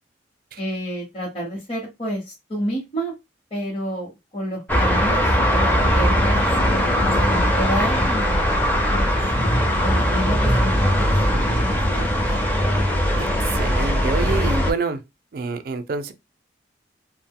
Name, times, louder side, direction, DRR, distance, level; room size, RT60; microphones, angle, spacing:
voice 1, 0.6-3.1 3.5-6.4 6.7-9.2 9.8-12.4, equal, 30° left, 0.9 m, -30 dB
sound 1, 4.7-14.7, equal, 10° left, 0.5 m, -20 dB
voice 2, 13.2-15.0 15.3-16.1, right 4 dB, 50° right, 0.4 m, -27 dB
2.4 x 2.1 x 3.6 m
head